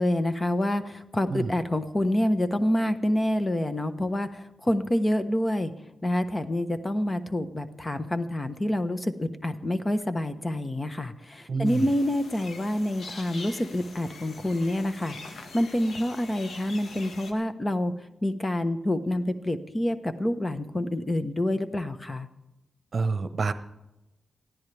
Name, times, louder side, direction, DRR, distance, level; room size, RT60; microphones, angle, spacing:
voice 1, 0.0-5.7 6.0-17.9 18.2-22.3, left 1 dB, 25° left, 10 dB, 1.2 m, -27 dB
voice 2, 11.5-11.9 22.9-23.5, right 4 dB, 50° right, 11 dB, 1.0 m, -27 dB
sound 1, 11.6-17.3, left 3 dB, 70° left, 1.8 m, -44 dB
20.5 x 14.5 x 3.5 m, 0.95 s
cardioid pair, 65°, 0 cm